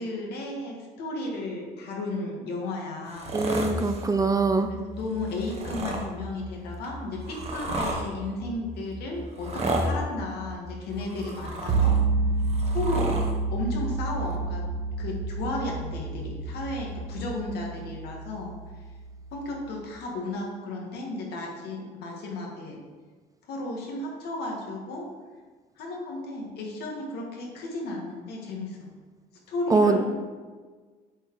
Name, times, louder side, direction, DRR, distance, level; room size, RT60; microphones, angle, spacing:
voice 1, 0.0-3.3 4.7-12.0 12.7-13.2 13.5-14.7 15.0-18.6 19.3-22.8 23.5-25.1 25.8-28.8 29.5-30.2, left 2 dB, 75° left, -1 dB, 1.9 m, -34 dB
sound 1, 3.1-4.2 5.3-6.1 6.8-8.1 9.3-9.9 10.9-12.0 12.4-13.3 14.3-14.4, right 1 dB, 40° right, 1.2 m, -32 dB
voice 2, 3.3-4.7 29.7-30.0, right 3 dB, 20° right, 7 dB, 0.5 m, -23 dB
sound 2, 3.3-17.3, left 1 dB, 85° right, 1.8 m, -42 dB
sound 3, 5.3-5.8 11.7-19.8, right 4 dB, 70° right, 1.3 m, -29 dB
7.7 x 4.3 x 4.8 m, 1.4 s
cardioid pair, 110°, 17 cm